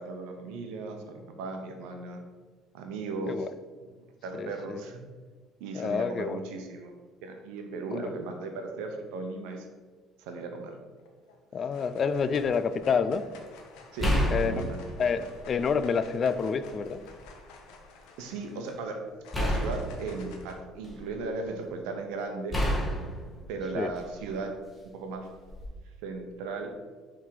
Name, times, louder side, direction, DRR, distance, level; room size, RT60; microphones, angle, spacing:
voice 1, 0.0-2.2 2.7-3.5 3.8-3.9 4.2-5.0 5.6-6.9 7.2-9.7 10.2-10.8 13.9-14.8 18.2-19.0 19.3-22.6 23.5-24.5 24.8-25.3 26.0-26.7, right 3 dB, 85° right, 4 dB, 0.9 m, -36 dB
voice 2, 4.3-4.8 5.7-6.4 7.9-8.1 11.5-13.3 14.3-14.6 15.0-17.0 23.8-23.9, left 6 dB, 45° left, 12 dB, 0.4 m, -28 dB
sound 1, 11.0-11.4 11.7-20.5, left 4 dB, 85° left, 0.9 m, -52 dB
sound 2, 12.2-12.4 14.0-15.8 16.3-17.2 19.3-21.3 22.5-24.4 25.5-25.7, equal, 15° left, 1.6 m, -31 dB
5.7 x 3.6 x 4.7 m, 1.4 s
supercardioid pair, 90°, 0 cm